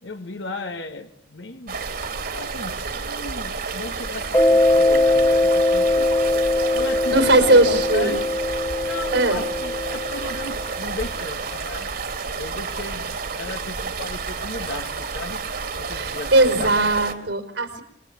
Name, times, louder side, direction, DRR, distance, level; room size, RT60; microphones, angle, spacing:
voice 1, 0.0-1.8 2.3-6.2 6.7-8.3 8.8-11.9 12.3-15.5 15.8-16.7, left 2 dB, 80° left, 5 dB, 1.8 m, -35 dB
sound 1, 1.7-17.1, right 4 dB, 55° right, 3.0 m, -30 dB
Mallet percussion, 4.3-10.7, left 2 dB, 15° left, 1.3 m, -21 dB
voice 2, 7.1-8.2 9.1-9.4 15.9-17.8, right 2 dB, 80° right, 6 dB, 4.8 m, -19 dB
27.5 x 22.0 x 8.9 m, 0.72 s
head